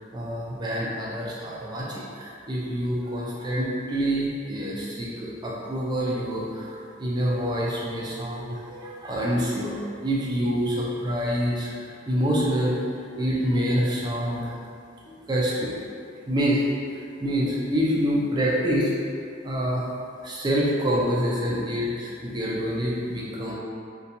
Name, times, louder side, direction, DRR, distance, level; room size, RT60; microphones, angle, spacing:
voice 1, 0.1-12.8 13.2-14.5 15.0-15.7 16.3-16.6 16.9-18.9 19.4-19.9 20.2-23.5, equal, 20° right, -5 dB, 0.4 m, -26 dB
2.8 x 2.2 x 2.5 m, 2.4 s
head